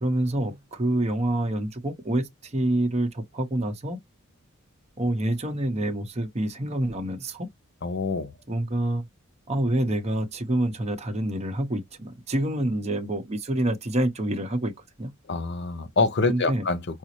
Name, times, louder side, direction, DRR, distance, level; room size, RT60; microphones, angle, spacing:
voice 1, 0.0-4.0 5.0-7.5 8.5-9.1 9.5-14.7 15.0-15.1 16.3-16.6, right 1 dB, 30° right, 0.7 m, -27 dB
voice 2, 7.8-8.3 15.3-17.0, left 3 dB, 55° left, 0.7 m, -26 dB
4.9 x 2.0 x 2.9 m
head